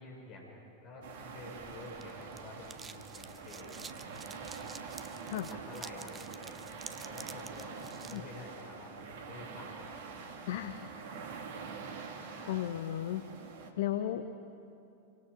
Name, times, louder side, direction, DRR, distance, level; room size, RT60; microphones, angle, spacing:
voice 1, 0.0-4.6 5.5-10.4 11.1-11.5 12.3-12.7, left 2 dB, 40° left, -1 dB, 5.4 m, -50 dB
sound 1, 1.0-13.7, right 5 dB, 55° right, 1.9 m, -45 dB
sound 2, 1.6-8.2, right 5 dB, 15° right, 0.8 m, -50 dB
voice 2, 10.5-10.8 12.5-13.3 13.8-14.3, left 12 dB, 55° left, 9 dB, 0.8 m, -34 dB
27.0 x 24.5 x 4.7 m, 2.7 s
figure-of-eight pair, 90°, 0 cm